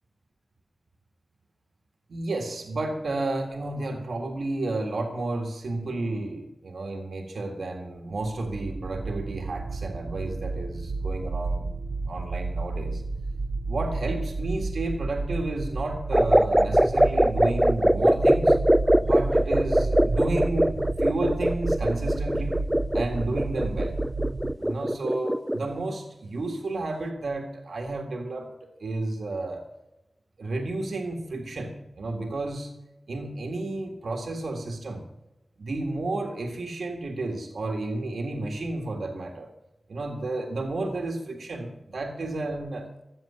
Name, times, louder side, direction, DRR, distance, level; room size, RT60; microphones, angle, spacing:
voice 1, 2.1-11.7 12.0-13.0 13.7-18.6 19.0-22.6 22.9-24.0 24.6-28.5 28.8-29.6 30.4-32.7 33.1-35.0 35.6-39.5 39.9-42.9, right 2 dB, 90° right, 3 dB, 1.8 m, -31 dB
sound 1, 8.3-24.5, right 3 dB, 70° right, 0.7 m, -31 dB
sound 2, 16.1-25.7, equal, 5° right, 0.5 m, -22 dB
14.5 x 7.5 x 9.7 m, 0.95 s
wide cardioid pair, 55°, 0 cm